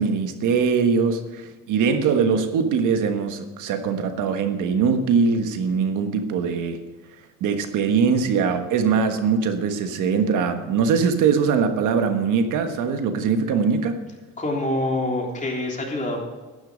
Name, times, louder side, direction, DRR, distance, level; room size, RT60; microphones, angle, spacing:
voice 1, 0.0-6.8 7.4-14.0, right 5 dB, 85° right, 7 dB, 1.4 m, -22 dB
voice 2, 14.4-16.2, left 1 dB, 25° left, -1 dB, 3.6 m, -25 dB
11.5 x 10.5 x 5.1 m, 1.3 s
cardioid pair, 90°, 30 cm